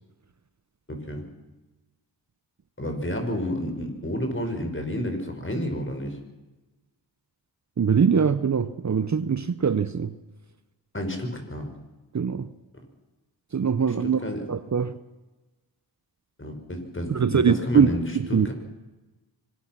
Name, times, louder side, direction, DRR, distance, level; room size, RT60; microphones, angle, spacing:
voice 1, 0.9-1.2 2.8-6.2 10.9-11.7 14.0-14.5 16.4-18.0 18.4-18.5, equal, 25° left, 5 dB, 5.5 m, -30 dB
voice 2, 7.8-10.2 12.1-12.5 13.5-14.2 14.5-15.0 17.1-17.9 18.2-18.5, right 6 dB, 40° right, 14 dB, 0.8 m, -22 dB
25.0 x 18.5 x 6.1 m, 1.1 s
cardioid pair, 55°, 44 cm